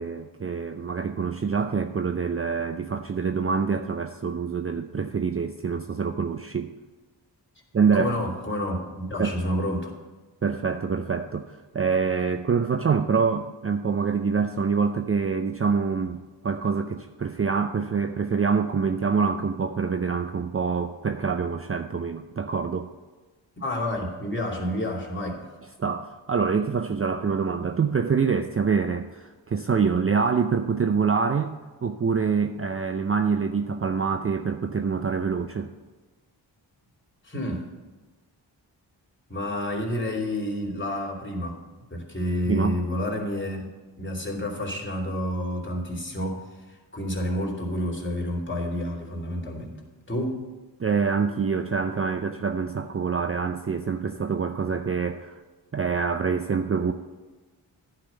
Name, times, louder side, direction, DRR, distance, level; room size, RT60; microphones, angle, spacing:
voice 1, 0.0-6.7 7.7-8.1 9.2-9.3 10.4-22.9 25.8-31.5 31.8-35.7 42.4-42.8 50.8-55.3 55.7-56.9, right 5 dB, 30° right, 7 dB, 0.6 m, -25 dB
voice 2, 7.9-9.9 23.6-25.4 37.2-37.6 39.3-41.6 41.9-43.7 44.0-49.8 50.1-50.4, left 1 dB, 25° left, 0 dB, 3.1 m, -29 dB
10.0 x 5.9 x 8.2 m, 1.3 s
supercardioid pair, 40°, 47 cm